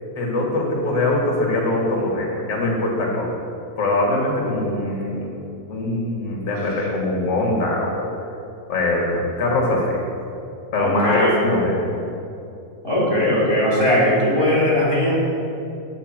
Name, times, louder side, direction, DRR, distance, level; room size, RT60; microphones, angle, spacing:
voice 1, 0.2-3.3 3.8-5.3 5.7-8.1 8.7-10.0 10.7-12.0, left 2 dB, 50° left, -2 dB, 3.0 m, -22 dB
voice 2, 10.8-11.4 12.8-15.2, left 1 dB, 10° right, -7 dB, 2.6 m, -19 dB
8.5 x 8.3 x 7.4 m, 2.7 s
omnidirectional pair, 3.4 m